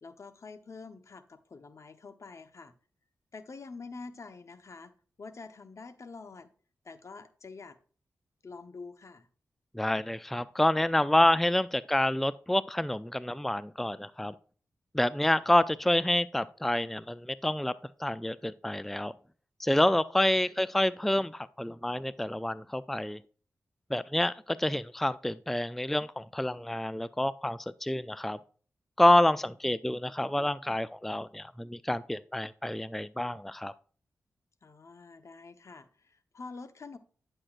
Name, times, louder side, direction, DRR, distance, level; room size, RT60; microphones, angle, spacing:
voice 1, 0.0-2.7 3.3-4.9 5.2-6.5 6.8-7.8 8.4-9.3 20.3-20.4 34.6-37.0, left 4 dB, 55° left, 10 dB, 1.0 m, -46 dB
voice 2, 9.7-14.3 14.9-17.7 18.0-19.1 19.6-23.2 23.9-28.4 29.0-33.7, left 1 dB, 5° left, 16 dB, 0.4 m, -28 dB
9.7 x 7.7 x 2.5 m, 0.42 s
cardioid pair, 40°, 6 cm